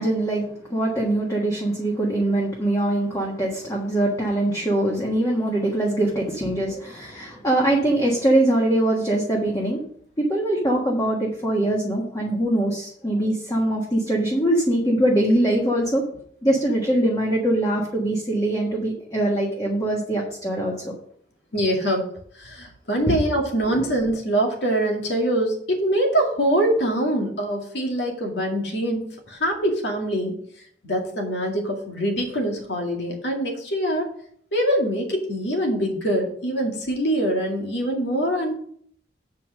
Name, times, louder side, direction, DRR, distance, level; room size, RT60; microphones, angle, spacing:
voice 1, 0.0-9.8 10.2-16.0 16.4-20.9 21.8-21.9 23.1-23.2 23.7-23.8, right 1 dB, 20° left, -2 dB, 1.4 m, -22 dB
voice 2, 21.5-22.1 22.3-30.3 30.8-34.1 34.5-38.5, right 1 dB, 70° left, 1 dB, 2.3 m, -24 dB
7.8 x 5.6 x 6.5 m, 0.63 s
head